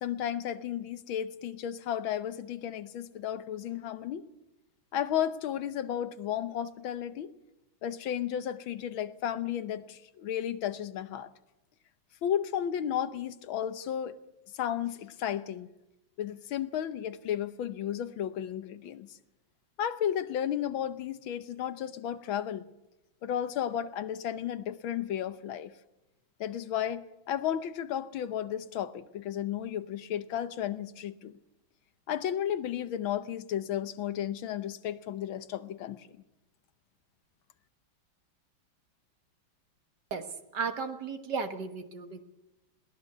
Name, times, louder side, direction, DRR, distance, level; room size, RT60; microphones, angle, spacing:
voice 1, 0.0-4.3 4.9-7.3 7.8-11.3 12.2-14.2 14.5-15.7 16.2-19.1 19.8-22.7 23.2-25.7 26.4-31.3 32.1-36.1, left 10 dB, 75° left, 1.7 m, -33 dB
voice 2, 40.5-42.2, right 5 dB, 55° right, 2.0 m, -34 dB
22.0 x 18.0 x 6.8 m
omnidirectional pair, 2.2 m